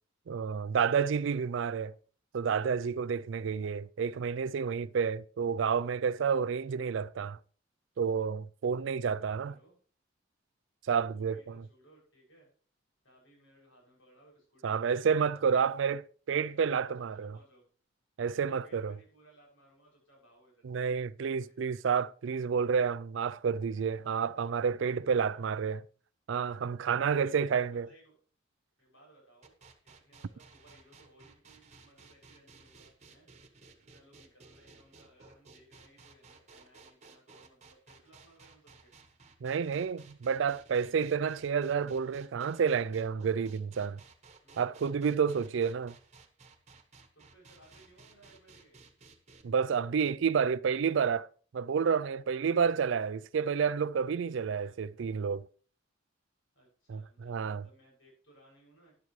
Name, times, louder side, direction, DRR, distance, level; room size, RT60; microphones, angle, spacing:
voice 1, 0.3-1.9 2.3-7.4 8.0-9.5 10.9-11.6 14.6-16.0 16.3-17.3 18.2-18.9 20.6-25.8 26.3-27.9 39.4-44.0 44.6-45.9 49.4-51.3 51.5-55.4 56.9-57.6, right 6 dB, 65° right, 0.4 m, -30 dB
voice 2, 8.9-9.7 11.1-12.5 13.0-15.9 16.4-17.7 18.3-21.0 21.3-21.8 25.0-25.5 27.0-28.1 28.8-29.5 29.8-33.3 33.9-38.9 44.4-44.8 45.3-45.7 47.1-48.8 54.3-54.8 56.5-59.0, right 1 dB, 80° left, 6.8 m, -62 dB
sound 1, 29.4-49.4, right 4 dB, 35° right, 1.2 m, -57 dB
12.5 x 10.5 x 3.2 m
head